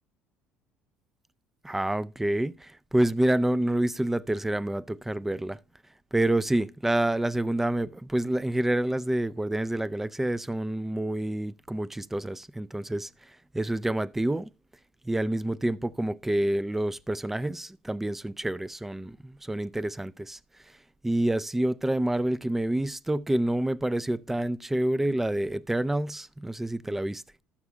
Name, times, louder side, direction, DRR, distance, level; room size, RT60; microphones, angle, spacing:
voice 1, 1.6-5.6 6.1-13.1 13.5-14.5 15.1-20.4 21.0-27.2, right 1 dB, 5° right, 0.4 m, -28 dB
12.0 x 7.1 x 3.3 m
cardioid pair, 110°, 4 cm